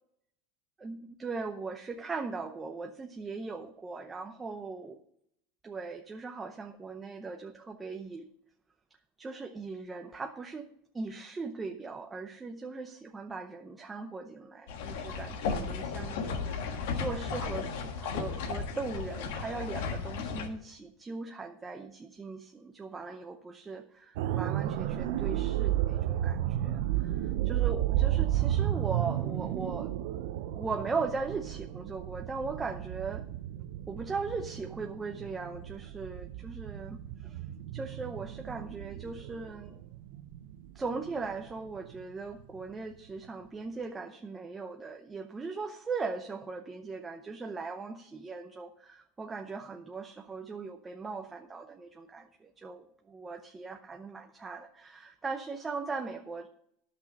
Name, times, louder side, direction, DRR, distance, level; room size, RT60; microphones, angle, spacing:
voice 1, 0.8-5.0 5.6-8.2 9.2-10.7 10.9-27.1 27.4-29.9 30.5-33.2 33.9-37.0 37.2-37.4 37.7-39.7 40.8-52.3 52.6-56.5, right 4 dB, 15° right, 5 dB, 0.7 m, -39 dB
sound 1, 14.7-20.5, left 5 dB, 75° left, 1.5 m, -35 dB
sound 2, 24.2-42.0 42.4-42.6, right 13 dB, 70° right, 0.7 m, -33 dB
10.5 x 6.2 x 6.6 m, 0.73 s
supercardioid pair, 125°, 0 cm